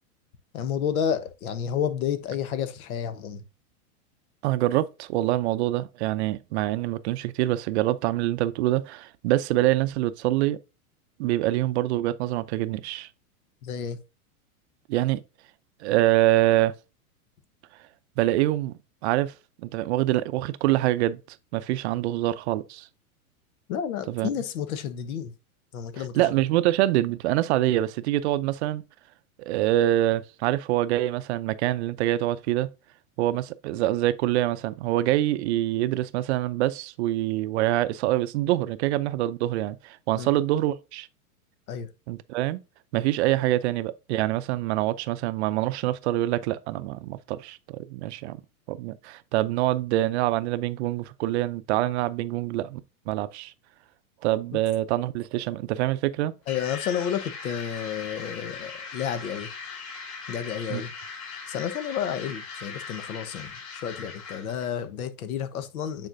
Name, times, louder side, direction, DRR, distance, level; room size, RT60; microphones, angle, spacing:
voice 1, 0.5-3.4 13.6-14.0 23.7-25.3 25.7-26.2 40.1-40.4 41.7-41.9 56.5-59.5 60.3-60.9 61.5-66.1, left 8 dB, 70° left, 1.1 m, -31 dB
voice 2, 4.4-10.6 11.2-13.1 14.9-15.2 15.8-16.7 18.2-18.7 19.0-19.3 19.6-21.2 21.5-22.9 24.1-24.3 26.1-28.8 29.4-32.7 33.2-41.1 42.1-42.6 42.9-48.4 48.7-52.8 53.1-53.5 54.2-56.3 60.7-60.8, right 15 dB, 50° right, 0.5 m, -25 dB
sound 1, 56.5-64.7, left 5 dB, 40° left, 3.8 m, -39 dB
8.9 x 4.3 x 2.6 m
hypercardioid pair, 125°, 44 cm